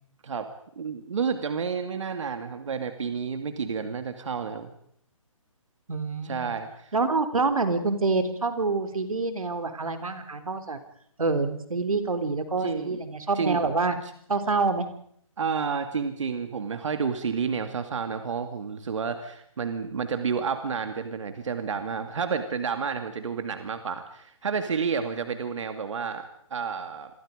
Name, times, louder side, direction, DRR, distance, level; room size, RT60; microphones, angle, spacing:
voice 1, 0.8-4.7 6.2-6.9 12.6-13.0 13.3-13.6 15.4-27.1, right 6 dB, 60° right, 7 dB, 2.5 m, -30 dB
voice 2, 5.9-6.5 6.9-10.8 11.2-14.0 14.3-14.9, right 3 dB, 85° right, 9 dB, 3.6 m, -26 dB
29.0 x 23.0 x 5.2 m, 0.69 s
hypercardioid pair, 155°, 17 cm